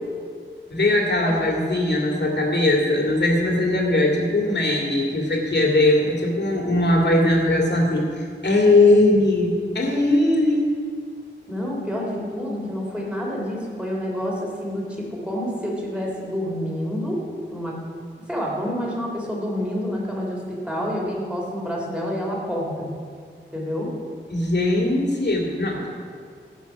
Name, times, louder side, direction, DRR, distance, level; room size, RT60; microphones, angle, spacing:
voice 1, 0.7-10.7 24.3-25.9, left 2 dB, 60° left, 0 dB, 2.4 m, -20 dB
voice 2, 11.5-17.2 17.5-17.8 18.3-22.9 23.5-23.9, equal, 5° right, -3 dB, 3.2 m, -28 dB
17.0 x 6.3 x 6.0 m, 2.1 s
wide cardioid pair, 100°, 20 cm